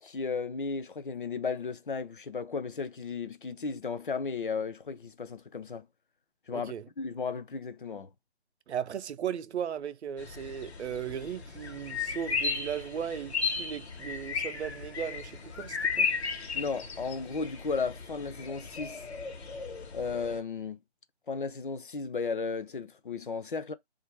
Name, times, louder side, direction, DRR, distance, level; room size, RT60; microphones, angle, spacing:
voice 1, 0.0-5.9 6.5-8.1 16.5-19.1 19.9-20.8 21.3-23.7, left 4 dB, 50° left, 0.4 m, -35 dB
voice 2, 6.5-6.9 8.7-16.1, right 8 dB, 75° right, 0.5 m, -36 dB
sound 1, 10.2-20.4, left 5 dB, 70° left, 0.9 m, -35 dB
2.8 x 2.5 x 2.9 m
hypercardioid pair, 175°, 34 cm